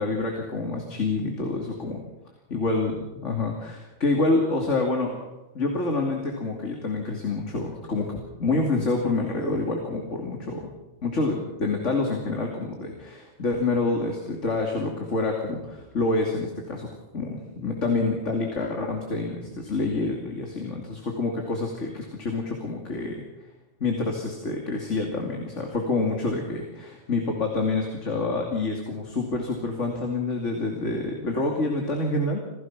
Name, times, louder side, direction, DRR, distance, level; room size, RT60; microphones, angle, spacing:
voice 1, 0.0-2.0 2.5-5.3 5.5-10.7 11.0-16.9 17.1-23.2 23.8-32.4, left 3 dB, 80° left, 2 dB, 3.0 m, -27 dB
27.5 x 17.0 x 6.0 m, 1.0 s
omnidirectional pair, 1.2 m